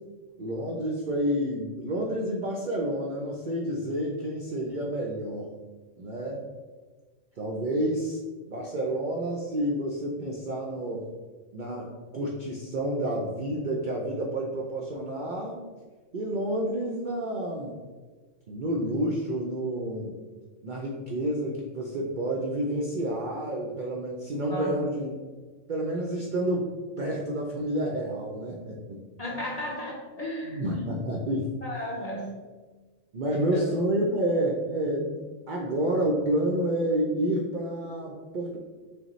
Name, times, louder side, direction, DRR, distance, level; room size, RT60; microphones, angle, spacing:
voice 1, 0.4-5.5 6.0-6.4 7.4-8.2 8.5-11.0 11.5-11.9 12.1-15.6 16.1-17.7 18.5-20.1 20.6-25.2 25.7-26.7 27.0-29.0 30.4-31.6 33.1-35.2 35.5-38.6, right 1 dB, 60° right, -2 dB, 0.5 m, -29 dB
voice 2, 29.2-30.9 31.6-32.4 33.5-33.6 34.0-34.1, equal, 35° left, -4 dB, 0.7 m, -34 dB
6.3 x 2.1 x 3.0 m, 1.3 s
omnidirectional pair, 1.4 m